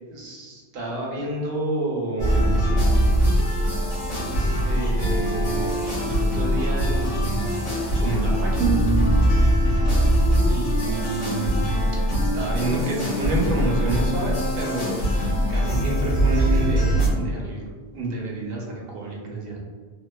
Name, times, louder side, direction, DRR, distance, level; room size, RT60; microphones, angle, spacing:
voice 1, 0.1-2.8 4.6-5.7 6.0-7.5 8.0-8.8 10.4-11.7 12.2-14.9 15.5-17.6 17.9-19.6, right 2 dB, 60° right, -2 dB, 0.8 m, -29 dB
sound 1, 2.2-17.1, equal, 80° left, 1.5 m, -22 dB
3.0 x 2.0 x 2.2 m, 1.5 s
omnidirectional pair, 1.1 m